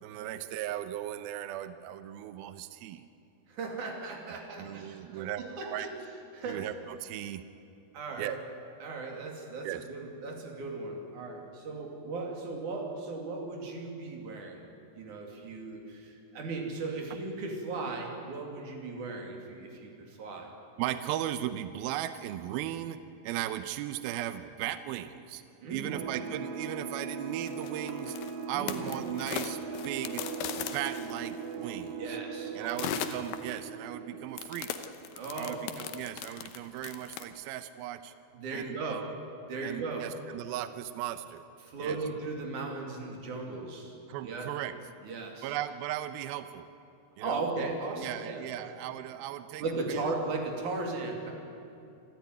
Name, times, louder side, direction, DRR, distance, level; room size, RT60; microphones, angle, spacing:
voice 1, 0.0-3.0 4.3-5.9 6.5-7.4 8.2-8.4 9.6-9.8 20.8-23.0 23.2-25.4 25.7-28.2 28.5-30.2 30.6-32.2 32.5-34.8 35.4-38.1 38.5-39.1 39.6-41.4 41.8-42.0 44.1-44.7 45.4-46.7 47.2-47.5 48.0-50.0, right 12 dB, 85° right, 11 dB, 2.1 m, -37 dB
voice 2, 3.5-5.9 6.3-6.7 7.9-8.4 8.8-14.6 15.0-20.5 25.6-26.0 28.5-28.9 32.0-32.9 35.1-35.6 38.3-39.1 39.5-40.1 41.6-44.0 44.2-44.5 45.0-45.5 47.2-48.7 49.6-51.4, right 3 dB, 50° right, 1 dB, 3.8 m, -37 dB
sound 1, 25.9-35.2, right 5 dB, 70° right, 2.2 m, -40 dB
sound 2, 27.5-31.5 32.7-33.7 34.4-37.2, left 10 dB, 75° left, 2.2 m, -38 dB
26.5 x 13.5 x 9.4 m, 2.6 s
omnidirectional pair, 5.1 m